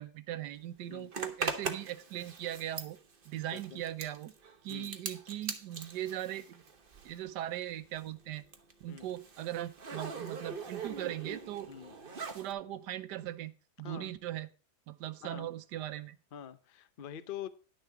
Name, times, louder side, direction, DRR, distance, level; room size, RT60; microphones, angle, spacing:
voice 1, 0.0-3.0 3.2-4.3 4.6-6.6 7.0-8.4 8.8-11.7 12.3-13.5 13.8-14.5 14.9-16.2, right 13 dB, 85° right, 1.3 m, -39 dB
Zipper (clothing), 1.1-7.3 7.6-12.5, right 5 dB, 40° right, 1.0 m, -41 dB
voice 2, 16.3-17.5, left 9 dB, 55° left, 0.6 m, -45 dB
11.0 x 6.6 x 4.7 m
omnidirectional pair, 1.8 m